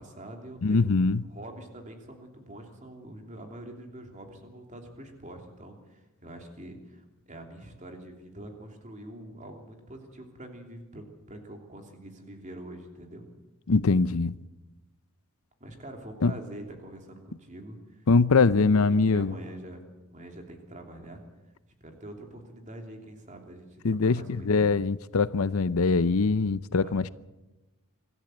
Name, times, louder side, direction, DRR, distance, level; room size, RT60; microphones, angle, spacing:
voice 1, 0.0-0.9 1.3-13.2 15.6-18.0 18.4-18.8 19.1-21.2 21.8-24.8 26.8-27.0, right 1 dB, 35° right, 3.0 m, -45 dB
voice 2, 0.6-1.2 13.7-14.4 16.2-16.3 18.1-19.3 23.8-24.2 24.5-27.1, left 4 dB, 75° left, 0.6 m, -22 dB
25.0 x 14.0 x 7.9 m
head